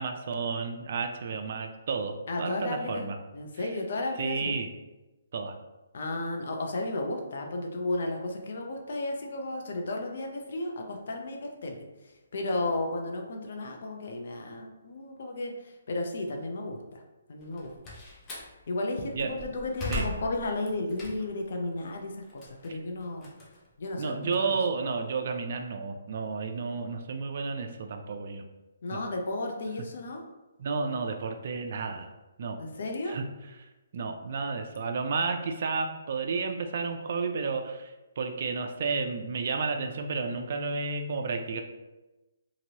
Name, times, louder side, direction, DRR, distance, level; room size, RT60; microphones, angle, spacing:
voice 1, 0.0-3.2 4.2-4.7 5.3-5.5 19.1-19.3 19.9-20.0 22.7-22.8 24.0-28.4 28.9-29.0 30.6-32.1 32.4-32.6 33.1-33.2 33.9-41.6, right 4 dB, 50° right, 5 dB, 0.4 m, -32 dB
voice 2, 2.3-4.6 5.9-17.0 17.3-17.7 18.7-23.3 23.8-24.5 28.8-30.2 32.6-33.2, left 2 dB, 60° left, 2 dB, 0.6 m, -33 dB
Slam, 17.4-18.5 19.1-21.5 21.9-24.3, left 1 dB, 15° left, 0.6 m, -38 dB
2.9 x 2.6 x 2.8 m, 1.1 s
hypercardioid pair, 155°, 0 cm